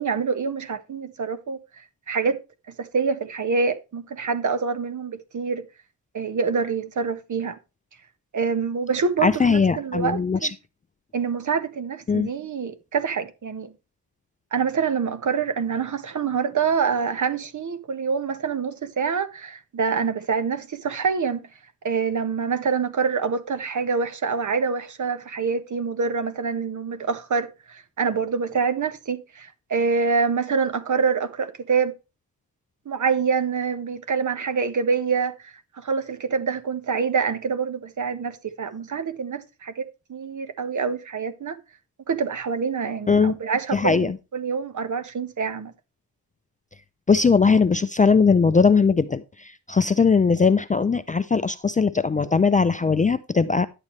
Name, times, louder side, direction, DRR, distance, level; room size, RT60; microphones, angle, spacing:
voice 1, 0.0-1.6 2.1-2.4 2.8-5.6 6.1-7.6 8.3-10.5 11.1-13.7 14.5-21.4 21.8-31.9 32.8-41.6 42.1-45.7, right 5 dB, 50° right, 1.4 m, -26 dB
voice 2, 9.2-10.5 12.1-12.3 43.1-43.4 43.7-44.2 47.1-53.7, left 5 dB, 20° left, 0.4 m, -20 dB
11.0 x 8.9 x 3.2 m
wide cardioid pair, 120°, 38 cm